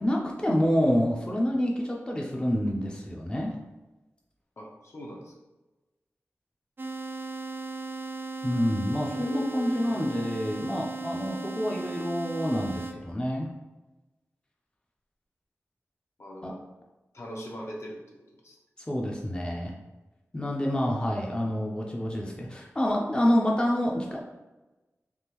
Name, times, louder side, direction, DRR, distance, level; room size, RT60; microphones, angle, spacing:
voice 1, 0.0-3.6 8.4-13.5 16.4-16.5 18.8-19.7 20.3-24.2, equal, 15° left, -2 dB, 0.5 m, -27 dB
voice 2, 4.6-5.3 9.1-10.1 16.2-16.6 17.1-18.0 18.4-18.6 19.5-19.6, equal, 60° left, -1 dB, 0.7 m, -41 dB
sound 1, 6.8-12.9, right 3 dB, 45° right, 0.4 m, -37 dB
3.5 x 2.4 x 2.9 m, 1.1 s
wide cardioid pair, 65°, 5 cm